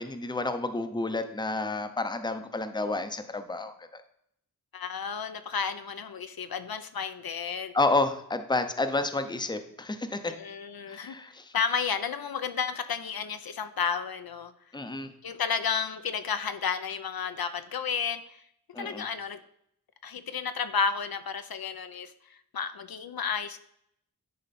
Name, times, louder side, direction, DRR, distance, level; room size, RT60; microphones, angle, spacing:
voice 1, 0.0-4.0 7.7-10.3 10.9-11.5 14.7-15.1 18.7-19.0, left 2 dB, 10° left, 8 dB, 0.7 m, -30 dB
voice 2, 4.7-7.7 10.2-11.2 11.5-14.5 15.2-18.4 18.8-19.4 20.0-23.6, left 6 dB, 70° left, 9 dB, 0.6 m, -32 dB
10.5 x 4.3 x 4.2 m, 0.70 s
wide cardioid pair, 80°, 38 cm